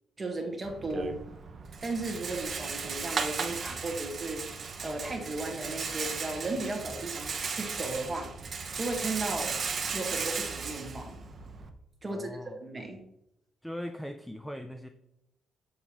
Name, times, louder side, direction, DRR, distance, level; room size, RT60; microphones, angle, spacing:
voice 1, 0.2-1.2 1.8-4.4 4.8-8.3 8.8-9.6 9.9-11.1 12.0-13.0, right 2 dB, 20° right, 2 dB, 1.4 m, -35 dB
Rattle, 0.6-11.7, right 5 dB, 40° right, 0.7 m, -36 dB
voice 2, 12.1-12.6 13.6-14.9, equal, ahead, 7 dB, 0.4 m, -40 dB
6.8 x 6.5 x 2.9 m, 0.82 s
cardioid pair, 140°, 0 cm